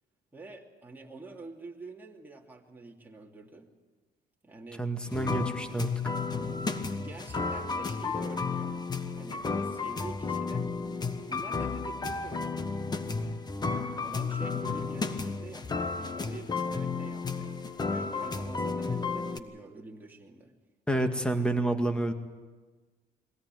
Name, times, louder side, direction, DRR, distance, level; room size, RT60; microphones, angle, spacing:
voice 1, 0.3-3.7 4.4-4.9 6.9-8.8 9.1-10.8 11.3-12.7 14.0-17.6 17.9-20.5, right 3 dB, 10° right, -1 dB, 2.8 m, -46 dB
voice 2, 4.8-6.1 13.7-13.9 20.9-22.1, right 2 dB, 5° left, 6 dB, 2.0 m, -29 dB
sound 1, 5.1-19.4, left 4 dB, 25° left, 1.3 m, -33 dB
22.5 x 17.0 x 9.2 m, 1.4 s
cardioid pair, 110°, 17 cm